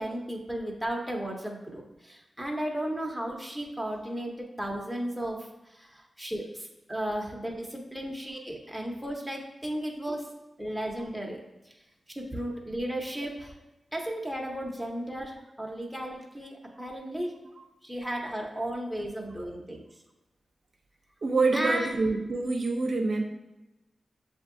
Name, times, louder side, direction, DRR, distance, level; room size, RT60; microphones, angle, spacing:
voice 1, 0.0-5.4 5.7-10.3 10.6-11.4 12.2-13.5 13.9-17.3 17.8-19.8 21.5-21.9, right 1 dB, ahead, 0 dB, 0.7 m, -34 dB
voice 2, 21.2-23.2, right 3 dB, 60° right, 2 dB, 0.5 m, -26 dB
7.2 x 2.7 x 2.5 m, 0.98 s
wide cardioid pair, 115°, 0 cm